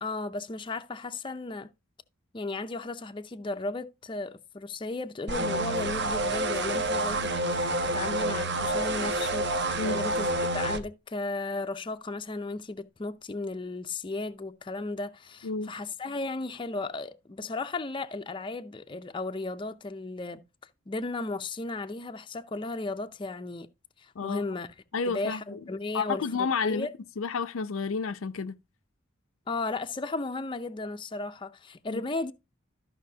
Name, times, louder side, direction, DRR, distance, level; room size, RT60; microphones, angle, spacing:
voice 1, 0.0-1.7 2.3-20.4 20.9-23.7 24.0-24.7 25.1-26.9 29.5-32.3, left 3 dB, 25° left, 0.5 m, -35 dB
sound 1, 5.3-10.8, right 2 dB, 55° right, 1.0 m, -28 dB
voice 2, 24.9-25.6 25.9-26.9 27.2-28.6 31.9-32.0, left 5 dB, 75° left, 0.6 m, -30 dB
13.5 x 5.6 x 2.7 m
head